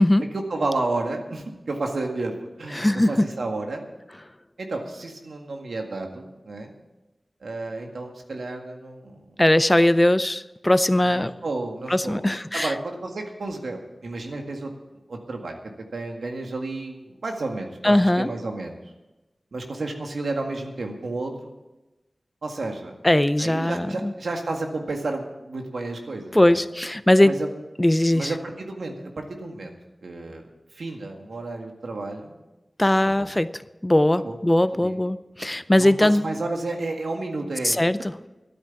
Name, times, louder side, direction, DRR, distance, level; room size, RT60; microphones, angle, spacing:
voice 1, 0.3-3.9 4.6-6.7 7.4-9.4 11.0-12.2 12.5-14.7 15.1-18.8 19.5-21.5 22.4-23.0 23.4-26.6 27.2-27.5 28.1-30.5 30.7-32.4 33.1-33.3 34.2-34.4 34.8-35.0 35.8-37.8, right 2 dB, 90° right, 3 dB, 1.8 m, -31 dB
voice 2, 2.7-3.3 9.4-11.3 11.9-12.7 17.8-18.3 23.0-24.1 26.3-27.4 27.8-28.3 32.8-36.2 37.6-38.1, left 1 dB, 20° left, 14 dB, 0.5 m, -20 dB
12.5 x 9.2 x 7.1 m, 1.1 s
wide cardioid pair, 50°, 0 cm